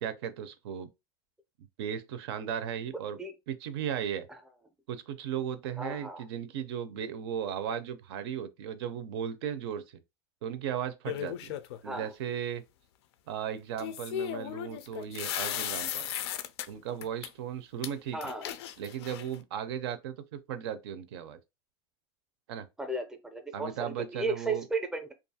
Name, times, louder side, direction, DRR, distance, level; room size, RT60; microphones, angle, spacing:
voice 1, 0.0-0.9 1.8-3.2 3.5-4.3 4.9-10.0 10.4-11.6 11.8-12.6 13.3-16.1 16.7-18.3 18.8-21.4 22.5-22.7 23.5-24.7, right 9 dB, 75° right, 0.5 m, -36 dB
voice 2, 5.8-6.2 11.8-12.1 18.1-18.5 22.8-25.1, right 2 dB, 5° right, 0.5 m, -34 dB
sound 1, 11.1-11.8 13.8-16.7 17.0-17.3 17.8-17.9 18.2-19.4, left 11 dB, 75° left, 0.4 m, -36 dB
2.5 x 2.3 x 2.7 m
supercardioid pair, 135°, 14 cm